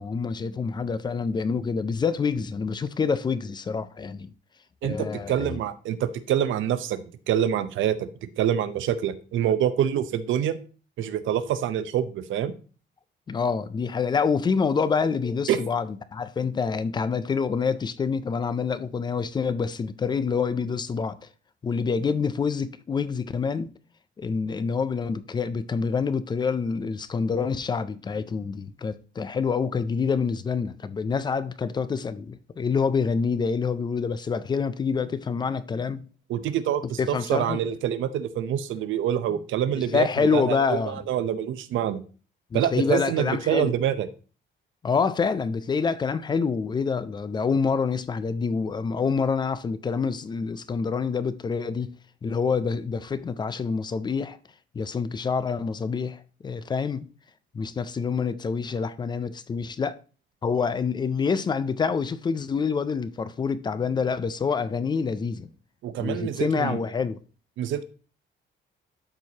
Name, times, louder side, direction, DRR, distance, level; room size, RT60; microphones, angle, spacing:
voice 1, 0.0-4.3 4.8-5.6 13.3-21.3 21.6-23.7 24.2-36.1 37.0-37.6 39.3-39.4 39.7-41.0 42.5-43.7 44.8-51.9 52.2-54.4 54.7-57.1 57.5-60.0 60.4-65.5 66.0-67.2, left 5 dB, 20° left, 0.3 m, -27 dB
voice 2, 4.8-10.6 11.0-12.5 15.5-15.6 36.3-42.0 42.5-44.1 65.8-66.8 67.6-67.8, right 10 dB, 70° right, 0.7 m, -26 dB
12.0 x 4.6 x 2.8 m
cardioid pair, 175°, 20 cm